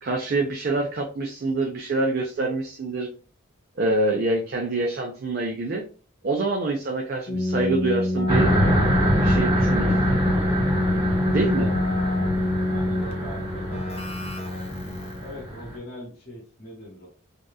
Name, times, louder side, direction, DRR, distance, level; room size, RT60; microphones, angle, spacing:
voice 1, 0.0-3.1 3.8-5.8 6.2-8.6 9.2-10.2 11.3-11.7, right 2 dB, 45° right, 1 dB, 0.4 m, -26 dB
Keyboard (musical), 7.3-15.4, left 2 dB, 30° left, 0.4 m, -25 dB
sound 1, 8.3-15.8, equal, 20° right, 1.2 m, -25 dB
voice 2, 12.6-14.0 15.1-17.1, left 1 dB, 45° left, -2 dB, 1.1 m, -41 dB
2.8 x 2.3 x 2.2 m, 0.39 s
head